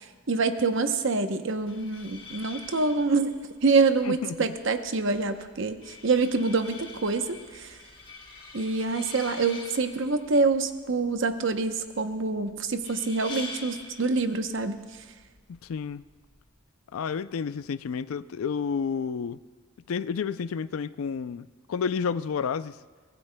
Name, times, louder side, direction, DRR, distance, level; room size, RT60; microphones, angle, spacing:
voice 1, 0.0-7.8 8.5-14.8, right 3 dB, 60° right, 8 dB, 0.8 m, -26 dB
sound 1, 1.6-16.6, left 3 dB, 20° left, 1.3 m, -46 dB
voice 2, 4.0-4.5 15.5-16.0 16.9-19.4 19.9-22.8, left 6 dB, 80° left, 15 dB, 0.4 m, -30 dB
24.5 x 18.5 x 2.2 m, 1.5 s
head